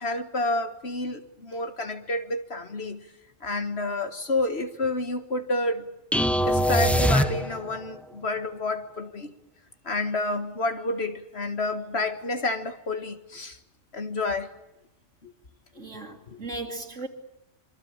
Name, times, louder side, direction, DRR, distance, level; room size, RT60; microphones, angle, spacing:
voice 1, 0.0-3.1 3.4-5.9 6.5-9.3 9.9-13.6 13.9-14.5 15.2-15.3 16.3-16.4, left 2 dB, 60° left, 1.9 m, -29 dB
sound 1, 6.1-7.8, equal, ahead, 1.1 m, -23 dB
voice 2, 15.8-17.1, right 2 dB, 85° right, 3.8 m, -37 dB
26.5 x 24.0 x 8.8 m
omnidirectional pair, 1.2 m